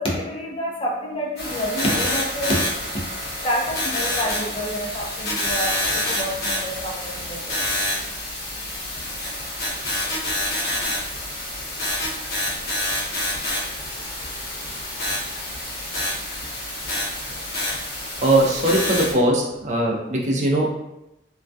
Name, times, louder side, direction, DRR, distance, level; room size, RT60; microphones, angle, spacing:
voice 1, 0.0-2.6 2.9-3.0 3.4-7.6, equal, 30° left, -3 dB, 0.5 m, -28 dB
sound 1, 1.4-19.1, left 1 dB, 60° left, 0.8 m, -27 dB
voice 2, 18.2-20.7, right 1 dB, 40° right, -1 dB, 0.4 m, -20 dB
2.2 x 2.2 x 2.5 m, 0.89 s
head